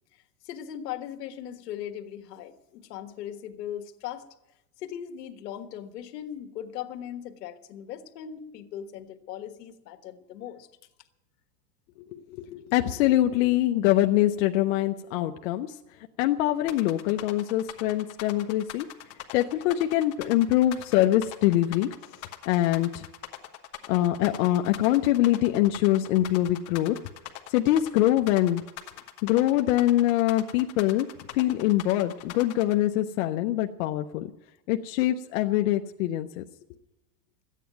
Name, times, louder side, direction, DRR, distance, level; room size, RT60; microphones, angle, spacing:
voice 1, 0.4-4.3 4.8-10.7, left 10 dB, 75° left, 8 dB, 1.6 m, -39 dB
voice 2, 12.1-15.8 16.2-18.9 19.3-21.9 22.5-23.1 23.9-27.0 27.5-28.6 29.2-31.1 31.3-34.3 34.7-36.4, left 14 dB, 55° left, 4 dB, 0.7 m, -24 dB
sound 1, 16.7-32.7, left 12 dB, 30° left, 1.1 m, -42 dB
14.0 x 9.2 x 9.2 m, 0.91 s
supercardioid pair, 150°, 49 cm